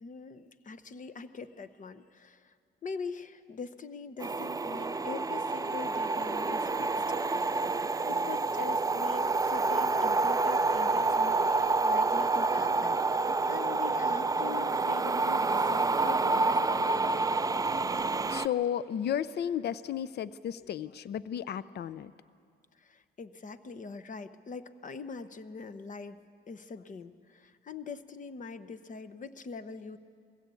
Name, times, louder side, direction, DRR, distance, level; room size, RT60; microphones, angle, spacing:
voice 1, 0.0-2.6 2.8-7.0 8.0-17.3 22.8-26.2 26.5-30.0, left 4 dB, 40° left, 11 dB, 1.0 m, -43 dB
sound 1, 4.2-18.5, right 3 dB, 20° right, 0.5 m, -28 dB
voice 2, 18.3-22.1, left 9 dB, 55° left, 17 dB, 0.6 m, -33 dB
21.5 x 16.5 x 8.4 m, 2.3 s
cardioid pair, 90°, 20 cm